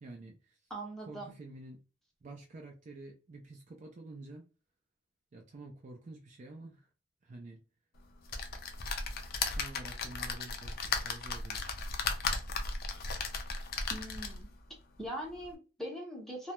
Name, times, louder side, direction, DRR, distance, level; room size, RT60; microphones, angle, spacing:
voice 1, 0.0-0.6 1.1-1.8 2.2-4.5 5.3-6.9 7.2-7.6 9.5-11.6, right 2 dB, 35° right, 0.4 m, -49 dB
voice 2, 0.7-1.3 13.9-14.5 15.0-16.5, right 1 dB, ahead, 0.7 m, -41 dB
sound 1, 8.3-14.5 15.1-15.2 15.4-15.5, left 4 dB, 45° left, 0.4 m, -36 dB
2.2 x 2.1 x 2.9 m
head